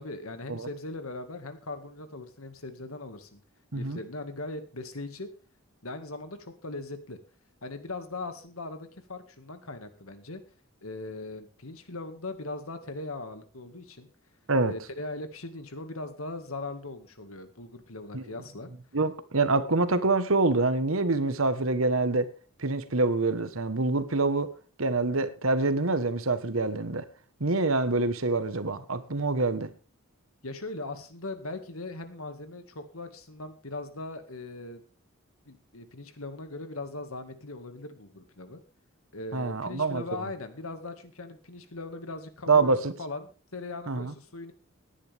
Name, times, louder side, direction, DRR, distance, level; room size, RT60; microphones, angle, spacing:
voice 1, 0.0-3.4 3.7-5.3 5.8-7.2 7.6-10.4 10.8-14.1 14.7-18.7 30.4-34.8 35.5-38.6 39.1-44.5, left 2 dB, 85° left, 2.0 m, -39 dB
voice 2, 18.9-22.3 22.6-24.5 24.8-27.0 27.4-29.7 39.3-40.2 42.5-42.9 43.9-44.1, right 3 dB, 75° right, 1.3 m, -26 dB
18.0 x 10.0 x 3.5 m
head